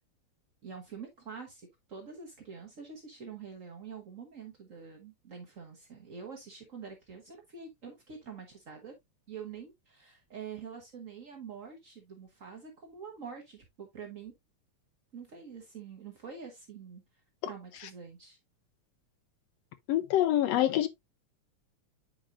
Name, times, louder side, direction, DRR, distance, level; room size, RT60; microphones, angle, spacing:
voice 1, 0.6-8.9 9.3-14.3 15.1-17.0 17.4-18.4, right 6 dB, 75° right, 0.7 m, -46 dB
voice 2, 19.9-20.9, left 13 dB, 80° left, 1.6 m, -25 dB
8.8 x 5.1 x 2.5 m
omnidirectional pair, 3.3 m